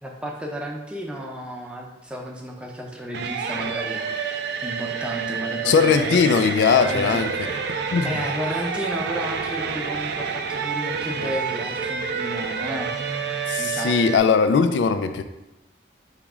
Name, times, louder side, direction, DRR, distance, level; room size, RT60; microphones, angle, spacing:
voice 1, 0.0-7.6 8.0-12.9 13.6-14.1, equal, 5° right, 0 dB, 0.5 m, -33 dB
sound 1, 3.1-14.2, right 6 dB, 65° right, 0.4 m, -28 dB
voice 2, 5.6-7.3 7.9-8.1 13.5-15.2, left 5 dB, 85° left, 9 dB, 0.3 m, -19 dB
4.8 x 3.1 x 3.6 m, 0.99 s
head